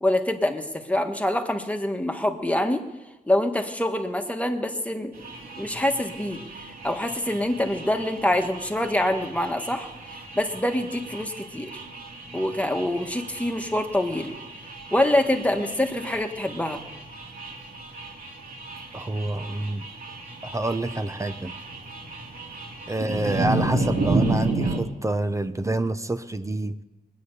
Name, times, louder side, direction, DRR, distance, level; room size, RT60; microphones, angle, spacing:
voice 1, 0.0-2.8 3.3-5.1 5.6-9.9 10.3-11.8 12.3-14.3 14.9-16.8, left 1 dB, 10° left, 5 dB, 1.6 m, -25 dB
sound 1, 5.1-24.8, right 2 dB, 65° right, 2.6 m, -33 dB
voice 2, 18.9-19.9 20.4-21.5 22.9-26.8, right 2 dB, 20° right, 10 dB, 0.8 m, -27 dB
21.0 x 9.4 x 6.8 m, 1.1 s
cardioid pair, 80°, 16 cm